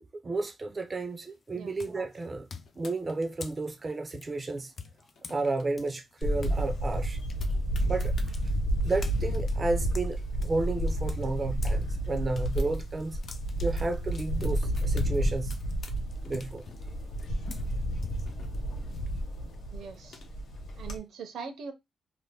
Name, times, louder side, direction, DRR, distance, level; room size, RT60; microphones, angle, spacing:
voice 1, 0.2-2.5 2.8-4.7 5.3-7.2 7.8-8.3 8.8-13.2 13.6-15.6 16.2-16.6, right 3 dB, 25° right, 0.4 m, -32 dB
sound 1, 0.9-1.2 1.8-6.6 6.9-11.8 12.1-19.5, left 5 dB, 40° left, 0.4 m, -48 dB
sound 2, 2.6-3.4 4.9-5.7 6.0-6.1 6.4-8.3 9.0-9.1 9.2-11.1 11.4-11.5 11.8-13.4 13.8-16.0 16.2-18.8 19.7-20.6, left 4 dB, 65° left, 0.7 m, -54 dB
Camera, 6.2-21.0, right 1 dB, 90° left, 1.0 m, -31 dB
voice 2, 19.7-20.2 20.8-21.7, right 5 dB, 80° right, 0.7 m, -41 dB
2.7 x 2.4 x 3.3 m
wide cardioid pair, 155°, 0 cm